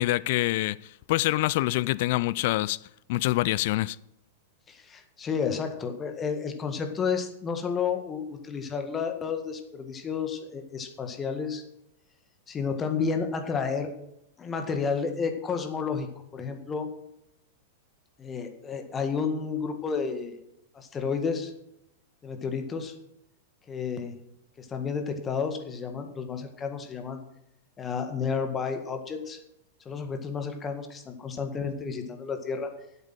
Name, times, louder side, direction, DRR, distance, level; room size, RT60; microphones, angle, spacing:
voice 1, 0.0-2.8 3.1-4.0, left 18 dB, 50° left, 0.4 m, -26 dB
voice 2, 4.7-11.6 12.5-13.9 14.4-16.1 16.3-16.9 18.2-20.4 20.7-21.5 22.2-22.9 23.7-24.1 24.6-27.2 27.8-29.4 29.9-32.7, left 5 dB, 20° left, 1.8 m, -31 dB
11.5 x 8.2 x 6.2 m
figure-of-eight pair, 95°, 0 cm